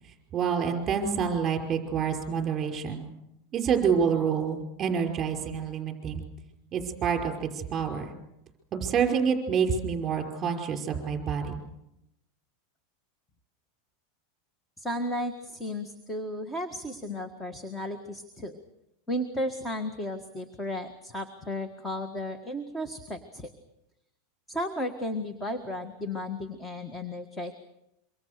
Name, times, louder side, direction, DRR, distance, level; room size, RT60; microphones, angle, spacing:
voice 1, 0.3-3.1 3.5-6.2 6.7-8.1 8.7-11.6, right 6 dB, 25° right, 4 dB, 5.3 m, -27 dB
voice 2, 14.8-18.6 19.1-23.5 24.5-27.5, left 1 dB, 10° left, 8 dB, 1.7 m, -34 dB
26.5 x 24.5 x 6.8 m, 0.86 s
supercardioid pair, 135°, 0 cm